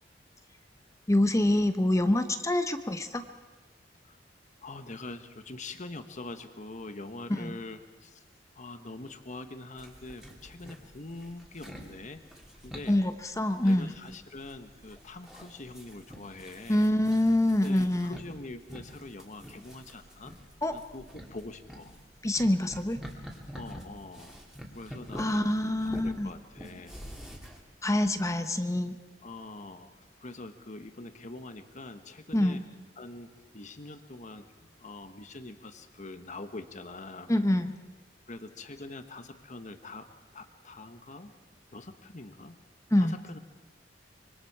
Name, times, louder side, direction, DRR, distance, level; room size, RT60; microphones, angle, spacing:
voice 1, 1.1-3.2 7.3-7.6 12.9-13.9 16.7-18.2 20.6-20.7 22.2-23.0 25.2-26.3 27.8-29.0 32.3-32.6 37.3-37.7 42.9-43.2, left 1 dB, 15° left, 8 dB, 0.9 m, -26 dB
voice 2, 4.6-8.2 8.5-12.2 12.6-13.0 13.6-16.9 17.5-20.4 20.7-21.9 23.5-24.4 24.7-25.5 25.9-27.0 29.2-32.6 33.0-37.3 38.3-40.1 40.3-41.3 41.7-42.6 43.0-43.4, left 2 dB, 45° left, 8 dB, 1.3 m, -44 dB
sound 1, 9.8-27.6, equal, 5° right, 2.8 m, -47 dB
25.0 x 23.5 x 4.8 m, 1.2 s
head